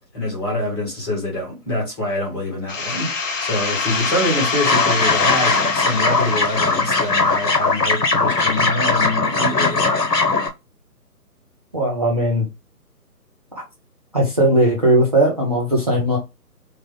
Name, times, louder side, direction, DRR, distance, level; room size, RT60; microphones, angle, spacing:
voice 1, 0.1-3.1 3.4-9.9, left 1 dB, 15° left, 1.3 m, -25 dB
sound 1, 2.7-8.2, left 4 dB, 55° left, 0.7 m, -25 dB
sound 2, 4.6-10.5, left 3 dB, 80° left, 1.1 m, -19 dB
voice 2, 11.7-12.4 13.5-13.6 14.1-16.2, right 1 dB, 25° right, 0.6 m, -18 dB
3.2 x 2.2 x 3.6 m
figure-of-eight pair, 150°, 48 cm